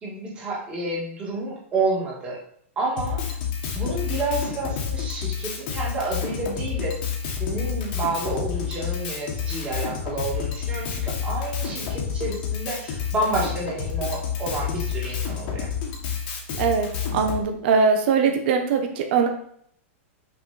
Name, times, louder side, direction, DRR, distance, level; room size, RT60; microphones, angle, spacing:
voice 1, 0.0-2.4 2.8-3.4 3.7-7.0 7.4-15.7, right 2 dB, 15° right, -5 dB, 2.0 m, -29 dB
Drum kit, 3.0-17.4, left 7 dB, 40° left, 1.5 m, -29 dB
voice 2, 16.6-19.3, right 5 dB, 45° right, 5 dB, 1.1 m, -21 dB
6.0 x 5.0 x 4.2 m, 0.65 s
supercardioid pair, 170°, 7 cm